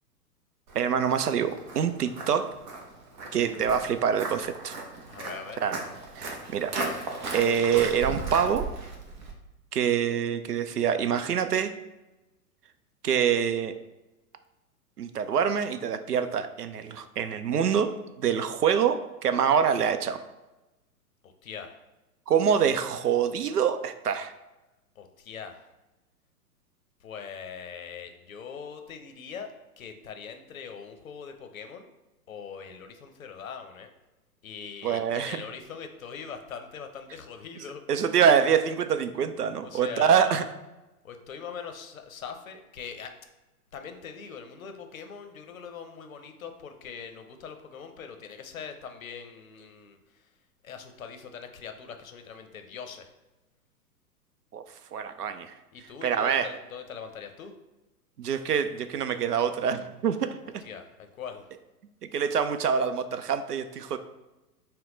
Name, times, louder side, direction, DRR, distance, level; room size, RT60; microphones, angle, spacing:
Walk footsteps, 0.7-9.3, right 3 dB, 30° right, 0.6 m, -37 dB
voice 1, 0.7-2.5 3.3-4.8 5.6-5.8 6.2-6.7 7.3-8.7 9.7-11.7 13.0-13.7 15.0-20.2 22.3-24.3 34.8-35.4 37.9-40.4 54.5-54.6 54.9-55.5 56.0-56.5 58.2-60.4 62.1-64.0, right 7 dB, 75° right, 10 dB, 0.5 m, -25 dB
voice 2, 5.1-5.6 21.2-21.8 25.0-25.7 27.0-31.9 32.3-33.9 34.4-37.8 39.6-40.4 41.0-43.2 43.7-50.3 50.6-53.1 55.7-57.5 60.6-61.5, left 6 dB, 60° left, 6 dB, 0.7 m, -42 dB
5.6 x 2.2 x 3.8 m, 1.0 s
figure-of-eight pair, 110°, 47 cm